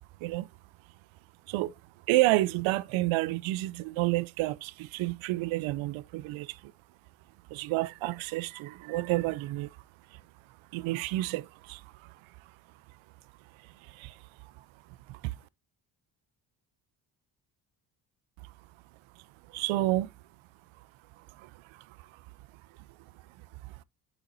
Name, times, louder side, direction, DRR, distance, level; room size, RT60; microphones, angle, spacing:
voice 1, 2.1-6.7 7.5-9.7 10.7-12.1 13.8-14.2 15.1-15.4 19.5-20.1 21.4-21.8 23.6-23.7, right 18 dB, 75° right, 0.6 m, -30 dB
8.1 x 7.3 x 2.6 m
supercardioid pair, 55°, 48 cm